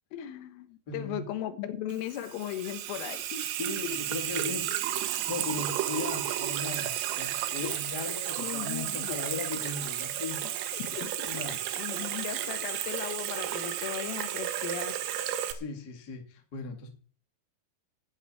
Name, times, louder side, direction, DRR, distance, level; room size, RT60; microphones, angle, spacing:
voice 1, 0.1-4.0 7.6-9.2 10.7-15.0, left 10 dB, 85° left, 3.9 m, -38 dB
voice 2, 0.9-1.3 3.6-10.7 11.2-11.6 15.4-16.9, left 4 dB, 40° left, 1.3 m, -38 dB
Water tap faucet / Sink (filling or washing), 1.9-15.5, right 12 dB, 85° right, 3.9 m, -33 dB
11.5 x 7.3 x 9.2 m
omnidirectional pair, 5.7 m